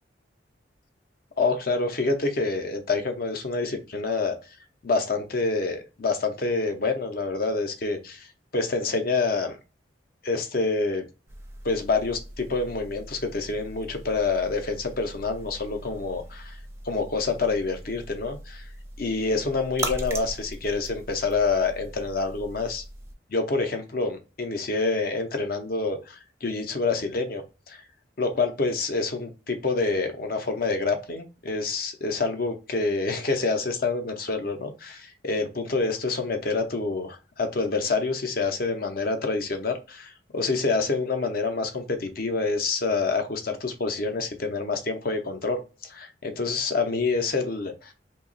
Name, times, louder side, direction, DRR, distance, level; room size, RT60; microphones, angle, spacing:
voice 1, 1.4-4.3 4.8-8.3 8.5-9.6 10.2-11.0 11.6-16.6 16.8-18.6 19.0-22.8 23.3-27.8 28.2-47.9, left 3 dB, 50° left, 6 dB, 0.6 m, -27 dB
sound 1, 11.3-23.1, right 1 dB, 15° right, 0.5 m, -40 dB
2.8 x 2.3 x 3.9 m, 0.31 s
head